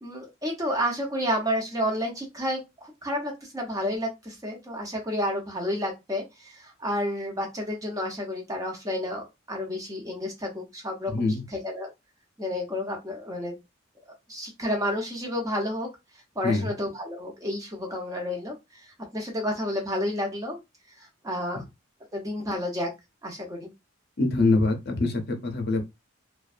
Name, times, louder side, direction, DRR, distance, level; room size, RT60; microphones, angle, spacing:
voice 1, 0.0-11.9 12.4-13.6 14.3-15.9 16.4-18.9 19.1-20.6 21.0-21.6 22.1-22.9 23.2-23.7, left 1 dB, 15° right, 0.7 m, -30 dB
voice 2, 11.1-11.4 16.4-16.7 24.2-25.8, left 3 dB, 50° left, 0.6 m, -24 dB
2.5 x 2.2 x 2.5 m
head